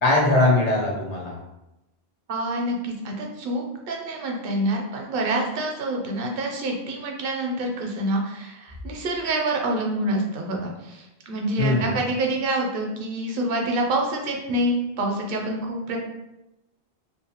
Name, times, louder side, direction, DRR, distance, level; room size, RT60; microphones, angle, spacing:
voice 1, 0.0-1.4 11.6-12.0, left 2 dB, 45° left, -2 dB, 0.6 m, -21 dB
voice 2, 2.3-16.0, right 1 dB, 65° right, 1 dB, 0.7 m, -27 dB
2.5 x 2.1 x 2.8 m, 0.93 s
omnidirectional pair, 1.1 m